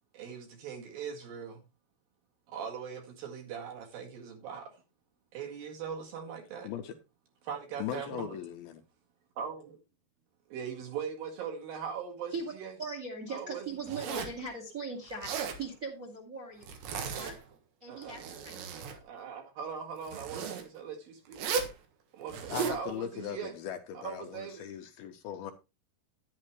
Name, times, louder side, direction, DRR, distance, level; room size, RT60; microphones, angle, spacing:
voice 1, 0.1-1.6 2.5-4.7 5.3-6.7 7.4-8.4 9.4-9.8 10.5-12.7 13.3-13.6 17.2-17.4 17.9-18.3 18.9-21.4 22.1-23.5 24.0-24.6, right 7 dB, 60° right, 3.4 m, -40 dB
voice 2, 6.6-7.0 7.8-8.8 22.5-25.5, left 10 dB, 75° left, 2.5 m, -39 dB
voice 3, 12.8-16.6 16.9-17.3 17.8-18.6, right 3 dB, 30° right, 1.6 m, -40 dB
Zipper (clothing), 13.9-14.4 15.1-15.6 16.6-17.5 18.0-19.0 20.1-20.6 21.3-21.8 22.3-22.8, right 6 dB, 85° right, 3.8 m, -35 dB
11.0 x 10.0 x 3.2 m
omnidirectional pair, 4.9 m